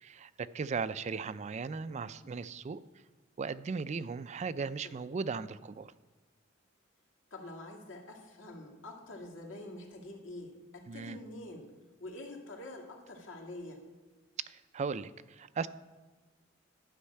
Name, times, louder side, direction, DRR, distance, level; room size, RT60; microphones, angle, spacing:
voice 1, 0.0-2.8 3.4-5.9 10.9-11.2 14.5-15.7, right 5 dB, 35° right, 15 dB, 0.4 m, -37 dB
voice 2, 7.3-11.7 12.0-13.9, left 1 dB, 85° left, 1 dB, 2.2 m, -46 dB
12.0 x 5.5 x 8.4 m, 1.3 s
head